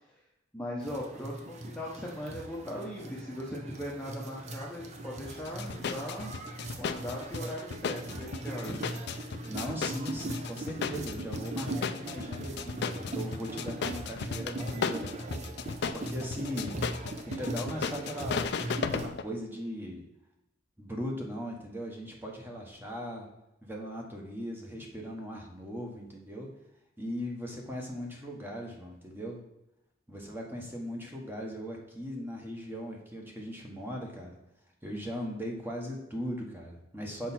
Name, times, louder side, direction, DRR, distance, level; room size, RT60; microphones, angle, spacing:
voice 1, 0.5-6.4 6.8-8.9, equal, 5° left, -4 dB, 0.8 m, -39 dB
sound 1, 0.8-19.1, right 2 dB, 35° right, 0.7 m, -40 dB
sound 2, 5.4-19.2, left 6 dB, 60° left, 0.4 m, -36 dB
voice 2, 9.5-15.3 15.9-18.5 18.9-20.0 20.8-23.3 23.6-26.5 27.0-29.4 30.1-34.4 34.8-37.3, equal, 10° right, 0 dB, 1.1 m, -39 dB
6.3 x 4.7 x 4.2 m, 0.88 s
head